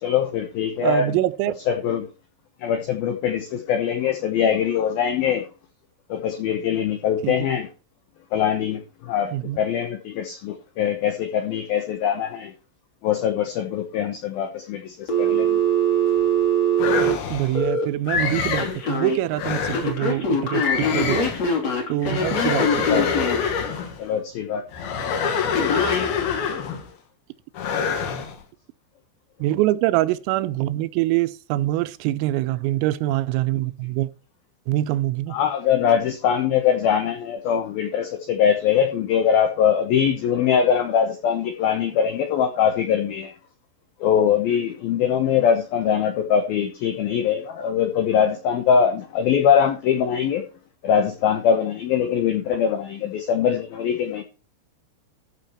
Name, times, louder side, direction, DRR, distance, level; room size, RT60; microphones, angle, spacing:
voice 1, 0.0-1.2 1.7-2.1 2.6-5.5 6.1-7.7 8.3-9.3 9.6-12.5 13.0-15.6 21.9-22.2 22.8-23.2 24.0-24.6 33.5-33.7 35.3-43.3 44.0-50.5 50.8-54.2, left 8 dB, 85° left, 2.1 m, -22 dB
voice 2, 0.8-1.5 7.2-7.3 9.3-9.6 17.3-21.3 21.9-23.0 29.4-34.1 34.7-35.4, right 15 dB, 90° right, 3.4 m, -24 dB
Telephone, 15.1-17.8 18.6-19.2 19.7-23.5 25.5-26.1, right 2 dB, 35° left, 3.3 m, -22 dB
sound 1, 16.8-17.6 18.1-18.8 19.3-20.0 20.5-21.5 22.0-24.0 24.7-26.9 27.5-28.3, left 6 dB, 60° left, 3.2 m, -26 dB
14.5 x 6.3 x 4.4 m
omnidirectional pair, 5.9 m